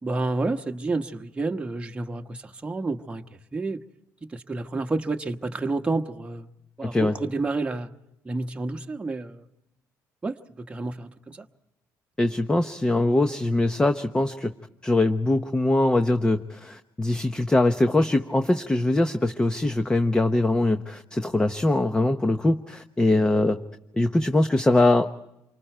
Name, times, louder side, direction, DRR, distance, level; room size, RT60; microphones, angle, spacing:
voice 1, 0.0-3.2 3.5-3.8 4.3-6.5 6.8-7.9 8.2-9.4 10.2-11.4, right 3 dB, 15° right, 1.2 m, -29 dB
voice 2, 12.2-14.5 14.8-23.6 23.9-25.1, left 2 dB, 10° left, 0.9 m, -22 dB
28.0 x 24.5 x 4.5 m
cardioid pair, 125°, 7 cm